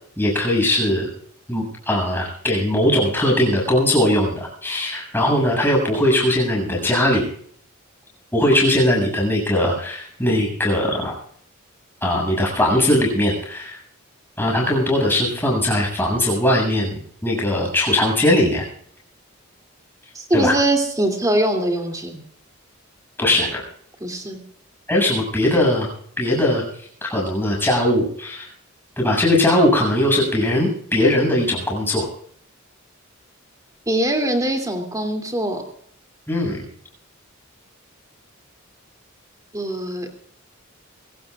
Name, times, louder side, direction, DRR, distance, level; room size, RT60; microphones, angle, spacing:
voice 1, 0.2-1.1 1.5-7.2 8.3-11.1 12.0-13.8 14.4-18.7 20.3-20.5 23.2-23.6 24.9-25.9 26.2-26.6 27.0-28.5 29.0-32.1 36.3-36.7, left 1 dB, 10° left, -1 dB, 7.2 m, -20 dB
voice 2, 20.1-22.2 24.0-24.4 33.9-35.6 39.5-40.1, right 1 dB, 15° right, 5 dB, 2.7 m, -22 dB
23.5 x 17.0 x 2.4 m, 0.62 s
head